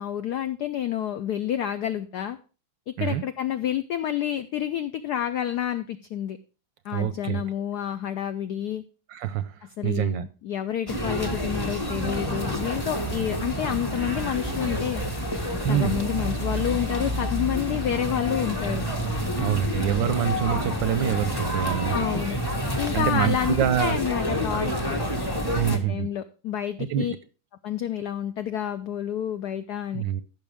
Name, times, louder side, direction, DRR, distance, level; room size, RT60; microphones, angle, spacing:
voice 1, 0.0-2.4 2.9-6.4 6.8-8.8 9.8-15.0 15.7-18.8 21.9-22.4 22.8-25.0 25.7-27.1 27.6-30.0, left 10 dB, 80° left, 0.9 m, -29 dB
voice 2, 6.9-7.4 9.1-9.5 9.8-10.3 15.6-16.0 19.4-22.3 22.9-24.0 25.5-26.1 26.8-27.1 29.9-30.2, right 10 dB, 75° right, 1.1 m, -26 dB
sound 1, 10.9-25.8, equal, 15° left, 1.0 m, -28 dB
15.0 x 6.2 x 3.4 m
omnidirectional pair, 2.4 m